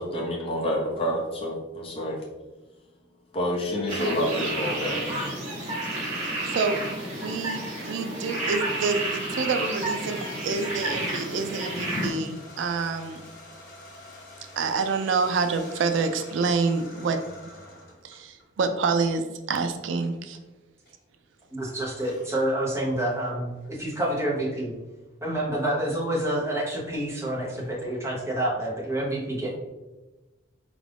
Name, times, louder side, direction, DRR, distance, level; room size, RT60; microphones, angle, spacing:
voice 1, 0.0-2.2 3.3-5.1, equal, 30° left, -1 dB, 0.7 m, -28 dB
sound 1, 3.9-12.1, right 1 dB, 35° right, 1.2 m, -31 dB
voice 2, 6.5-13.3 14.6-17.2 18.0-20.4, right 4 dB, 75° right, 8 dB, 0.4 m, -27 dB
sound 2, 9.7-18.7 19.2-20.4 20.8-21.0 21.8-24.8 25.3-26.0 26.2-27.8, left 1 dB, 50° left, 1.1 m, -48 dB
voice 3, 21.5-24.7 25.2-29.5, right 1 dB, 15° right, -5 dB, 0.9 m, -28 dB
4.4 x 2.5 x 3.4 m, 1.1 s
head